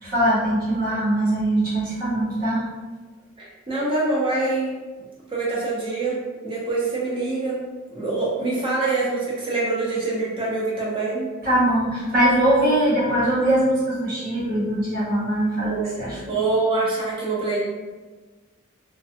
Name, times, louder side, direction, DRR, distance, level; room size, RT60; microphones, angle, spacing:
voice 1, 0.0-2.6 11.4-16.3, right 1 dB, 45° right, -8 dB, 1.0 m, -21 dB
voice 2, 3.4-4.7 5.3-6.1 6.4-7.6 7.9-11.3 15.6-16.0 16.3-17.6, right 3 dB, 25° right, -6 dB, 0.7 m, -25 dB
2.3 x 2.2 x 2.6 m, 1.3 s
head